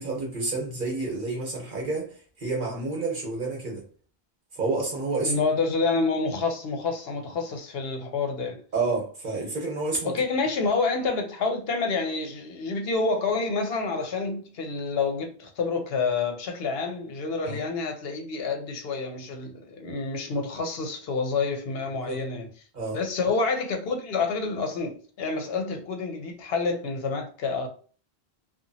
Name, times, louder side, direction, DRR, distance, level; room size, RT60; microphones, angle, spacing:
voice 1, 0.0-3.8 4.5-5.3 8.7-10.1 17.4-17.6 22.0-22.2 22.7-23.0, right 3 dB, 50° right, 1.1 m, -29 dB
voice 2, 5.2-8.6 10.0-22.5 22.9-27.7, left 4 dB, 70° left, 0.8 m, -28 dB
2.8 x 2.3 x 2.7 m
omnidirectional pair, 1.1 m